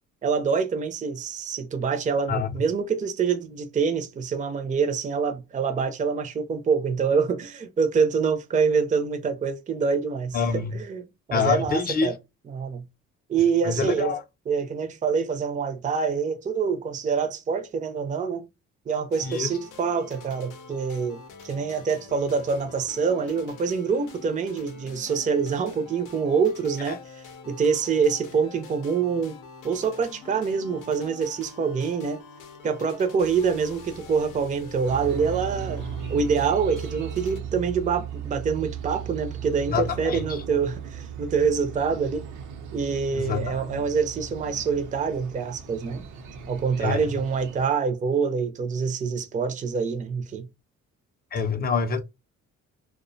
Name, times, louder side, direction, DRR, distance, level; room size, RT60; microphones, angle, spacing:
voice 1, 0.2-12.1 12.5-12.8 13.3-14.1 14.5-18.4 18.9-21.2 21.4-27.0 27.5-29.4 29.6-32.2 32.6-35.8 36.1-42.2 42.7-46.0 46.5-50.5, right 5 dB, 25° right, 0.4 m, -26 dB
voice 2, 10.3-10.7 11.3-12.1 13.6-14.2 19.2-19.5 26.9-27.0 39.7-40.4 43.1-43.8 46.8-47.1 51.3-52.0, left 5 dB, 30° left, 0.5 m, -26 dB
sound 1, 19.1-37.4, left 4 dB, 85° left, 0.6 m, -45 dB
sound 2, 34.9-47.7, right 8 dB, 85° right, 0.6 m, -37 dB
2.4 x 2.1 x 2.5 m
cardioid pair, 90°, 30 cm